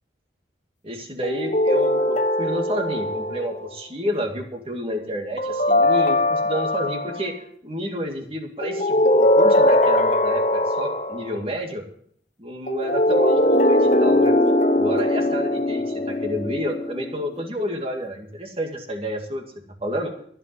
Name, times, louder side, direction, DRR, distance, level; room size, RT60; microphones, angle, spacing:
voice 1, 0.8-7.3 7.6-11.8 12.4-14.3 14.8-19.4 19.8-20.1, equal, 30° right, 3 dB, 2.1 m, -30 dB
sound 1, 1.2-3.7 5.4-7.2 8.6-11.3 12.7-17.2, left 1 dB, 40° left, 1.1 m, -20 dB
15.0 x 5.6 x 9.5 m, 0.64 s
head